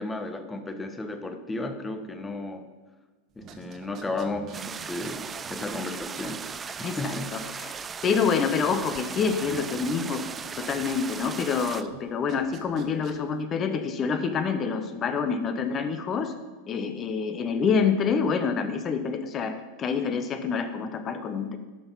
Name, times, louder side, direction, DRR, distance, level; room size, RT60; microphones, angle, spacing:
voice 1, 0.0-2.7 3.4-7.4, left 2 dB, 15° left, 8 dB, 1.0 m, -34 dB
sound 1, 3.3-13.4, right 6 dB, 40° right, 1.2 m, -48 dB
sound 2, 4.5-11.8, right 6 dB, 25° right, 0.3 m, -37 dB
voice 2, 6.8-7.7 8.0-10.2 10.6-16.3 16.7-21.6, left 5 dB, 35° left, 9 dB, 1.0 m, -27 dB
11.5 x 6.2 x 4.1 m, 1.3 s
hypercardioid pair, 90°, 0 cm